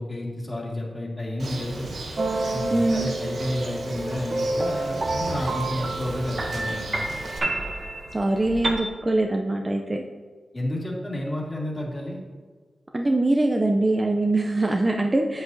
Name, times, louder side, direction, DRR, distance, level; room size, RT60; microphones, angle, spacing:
voice 1, 0.0-1.9 2.5-7.1 10.5-12.2, left 1 dB, 20° left, -3 dB, 2.0 m, -31 dB
Bird, 1.4-7.4, right 2 dB, 80° right, 1.1 m, -36 dB
sound 1, 2.2-8.7, right 2 dB, 40° right, 0.9 m, -29 dB
voice 2, 2.7-3.1 8.1-10.0 12.9-15.4, right 2 dB, 25° right, 2 dB, 0.5 m, -23 dB
8.2 x 7.9 x 2.7 m, 1.5 s
cardioid pair, 75°, 0 cm